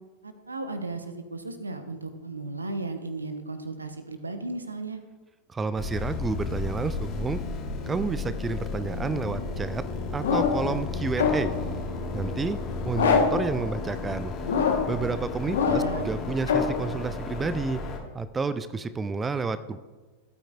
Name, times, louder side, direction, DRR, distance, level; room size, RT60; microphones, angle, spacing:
voice 1, 0.2-5.0 15.4-16.2, right 2 dB, 80° right, 9 dB, 1.0 m, -35 dB
voice 2, 5.5-7.4 7.9-9.8 10.1-11.5 12.1-12.6 12.8-14.3 14.9-17.8 18.1-19.8, right 4 dB, 15° right, 13 dB, 0.4 m, -30 dB
sound 1, 5.8-18.0, left 3 dB, 35° left, 1.9 m, -33 dB
sound 2, 10.2-10.7 11.2-11.7 12.9-13.5 14.4-15.0 15.5-16.0 16.5-16.8, left 6 dB, 65° left, 1.3 m, -24 dB
16.5 x 8.9 x 2.5 m, 1.3 s
figure-of-eight pair, 90°, 0 cm